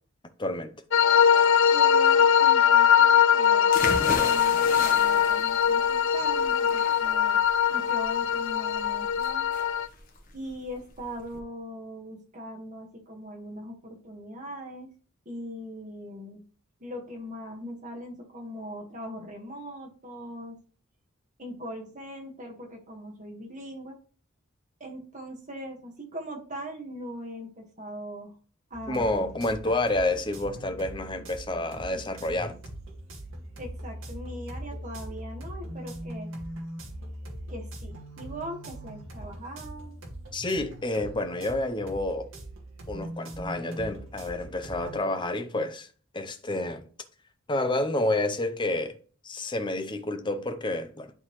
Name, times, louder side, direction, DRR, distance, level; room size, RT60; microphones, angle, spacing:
voice 1, 0.4-0.7 28.9-32.6 40.3-42.3 42.9-45.9 46.1-46.9 47.5-48.9 49.2-51.1, left 2 dB, 20° left, 0.7 m, -29 dB
sound 1, 0.9-9.9, left 8 dB, 60° left, 0.5 m, -21 dB
voice 2, 1.7-7.4 7.7-9.5 10.3-14.9 15.2-16.4 16.8-20.6 21.4-24.0 24.8-28.3 28.7-29.3 29.6-29.8 33.6-36.3 37.5-40.0, equal, 35° right, 1.7 m, -40 dB
sound 2, 3.7-11.4, left 3 dB, 40° left, 1.2 m, -36 dB
sound 3, 28.7-45.0, right 1 dB, 65° right, 2.0 m, -41 dB
11.0 x 3.9 x 3.2 m
head